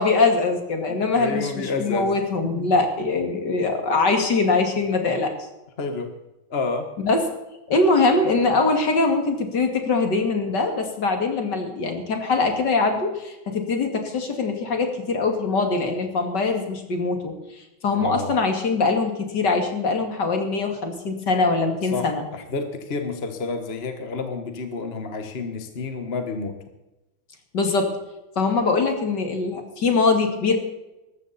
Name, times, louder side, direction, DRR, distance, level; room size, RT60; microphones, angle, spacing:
voice 1, 0.0-5.3 7.0-7.2 7.7-22.2 27.5-28.0 28.4-30.6, left 3 dB, 55° left, 4 dB, 2.9 m, -22 dB
voice 2, 0.9-2.1 2.5-2.7 5.8-6.1 6.5-6.9 17.9-18.4 21.9-26.6, left 4 dB, 35° left, 6 dB, 1.5 m, -29 dB
19.5 x 14.5 x 4.2 m, 0.97 s
omnidirectional pair, 2.2 m